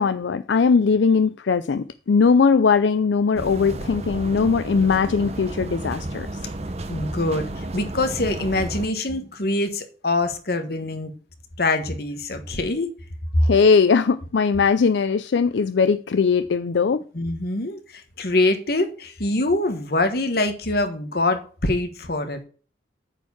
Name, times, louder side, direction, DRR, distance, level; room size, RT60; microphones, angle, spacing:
voice 1, 0.0-6.3 13.4-17.0, left 5 dB, 75° left, 0.4 m, -19 dB
sound 1, 3.3-8.9, right 1 dB, 35° right, 0.7 m, -32 dB
voice 2, 6.9-11.1 11.6-12.9 13.3-13.4 17.1-22.4, left 2 dB, 55° left, 1.4 m, -24 dB
9.0 x 4.5 x 7.1 m
head